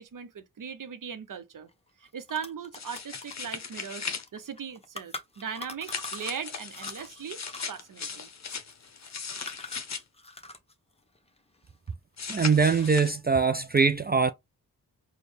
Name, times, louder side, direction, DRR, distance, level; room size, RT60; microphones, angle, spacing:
voice 1, 0.0-1.7 2.0-7.4 7.7-8.3, right 7 dB, 55° right, 0.8 m, -39 dB
sound 1, 1.7-1.8 2.0-6.4 6.7-10.7 11.0-12.2 12.5-13.1, left 2 dB, 15° left, 0.9 m, -44 dB
sound 2, 2.7-4.3 5.8-10.0 12.2-13.1, left 6 dB, 45° left, 0.8 m, -38 dB
voice 2, 12.3-14.3, right 5 dB, 25° right, 0.4 m, -22 dB
4.3 x 2.3 x 3.3 m
cardioid pair, 55°, 37 cm